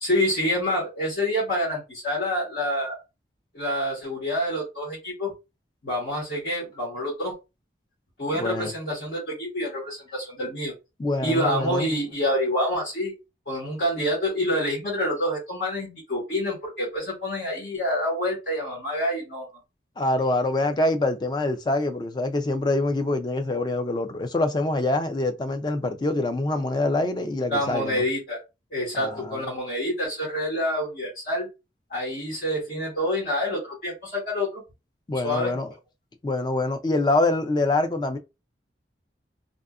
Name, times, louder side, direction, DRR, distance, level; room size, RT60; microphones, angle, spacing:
voice 1, 0.0-3.0 3.5-5.3 5.8-7.3 8.2-10.7 11.2-13.1 13.5-19.5 27.5-28.4 28.7-31.5 31.9-34.6 35.2-35.5, equal, 65° left, 1.3 m, -27 dB
voice 2, 8.3-8.7 11.0-11.9 20.0-28.0 28.9-29.5 35.1-35.7 36.2-38.2, left 2 dB, 25° left, 0.3 m, -25 dB
2.6 x 2.4 x 2.3 m
head